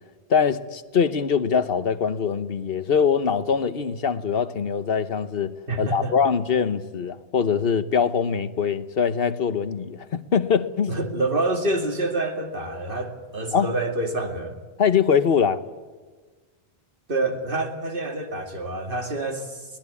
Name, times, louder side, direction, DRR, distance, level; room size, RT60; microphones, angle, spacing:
voice 1, 0.3-10.9 13.5-13.7 14.8-15.6, left 6 dB, 65° left, 1.2 m, -23 dB
voice 2, 5.7-6.1 10.9-14.6 17.1-19.6, right 2 dB, 60° right, 2.7 m, -27 dB
22.5 x 19.0 x 8.5 m
omnidirectional pair, 1.0 m